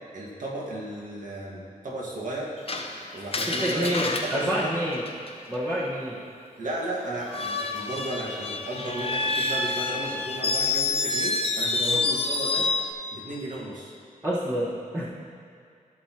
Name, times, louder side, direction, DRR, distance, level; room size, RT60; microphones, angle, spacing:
voice 1, 0.1-2.6 3.1-4.7 6.6-12.7 13.1-13.9, right 1 dB, 60° right, -4 dB, 1.7 m, -34 dB
Screech, 2.7-5.6 7.2-12.9, left 3 dB, 40° left, 0.8 m, -28 dB
voice 2, 3.5-5.0 5.5-6.2 11.8-12.0 14.2-15.1, equal, 20° right, -8 dB, 1.4 m, -28 dB
14.0 x 6.3 x 3.0 m, 2.3 s
wide cardioid pair, 95°, 15 cm